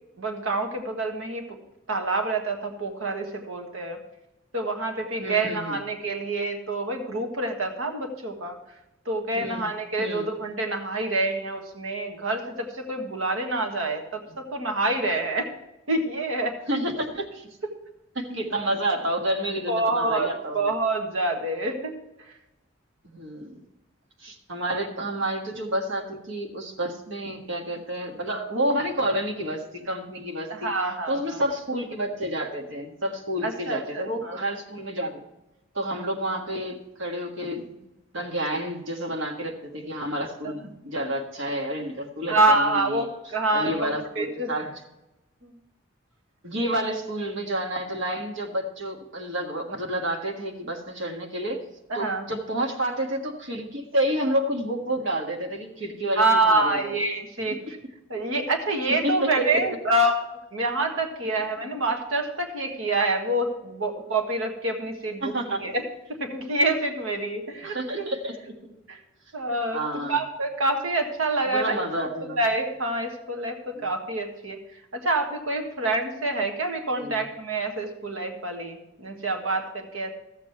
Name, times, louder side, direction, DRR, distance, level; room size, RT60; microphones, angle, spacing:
voice 1, 0.2-1.4 1.9-4.0 4.5-8.6 9.0-15.5 15.9-16.5 19.7-20.3 20.5-21.9 30.5-31.4 33.4-34.4 40.4-40.5 42.3-44.5 45.4-45.5 51.9-52.3 56.1-57.8 58.1-60.2 60.5-65.3 65.6-65.8 66.2-68.1 68.9-69.0 69.3-69.8 70.1-71.8 72.4-74.6 74.9-80.1, right 2 dB, 80° right, 4 dB, 1.5 m, -27 dB
voice 2, 5.2-5.8 9.3-9.7 10.0-10.3 16.7-17.5 18.2-20.7 23.0-23.6 24.2-30.7 31.1-35.2 35.7-37.8 38.1-43.1 43.5-44.7 46.4-51.6 51.9-56.2 56.5-56.9 59.0-59.6 65.2-65.6 67.6-68.6 69.7-70.2 71.5-72.4 73.8-73.9 77.0-77.2, right 1 dB, 65° right, 1 dB, 1.7 m, -29 dB
13.5 x 7.6 x 4.5 m, 0.95 s
head